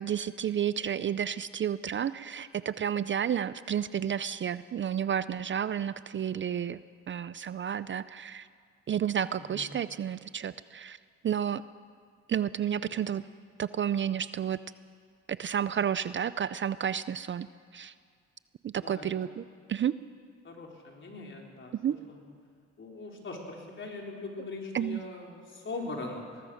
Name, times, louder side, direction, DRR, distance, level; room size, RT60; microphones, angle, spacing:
voice 1, 0.0-6.8 7.1-8.5 8.9-11.0 11.2-11.6 12.3-13.2 13.6-14.6 15.3-17.5 17.7-17.9 18.6-19.4 19.7-20.0 21.8-22.0 24.7-25.0, right 9 dB, 40° right, 15 dB, 0.5 m, -31 dB
voice 2, 18.8-19.1 20.4-21.7 22.1-22.2 22.8-26.4, left 3 dB, 40° left, 0 dB, 4.3 m, -41 dB
21.5 x 19.0 x 6.4 m, 2.1 s
cardioid pair, 90°, 30 cm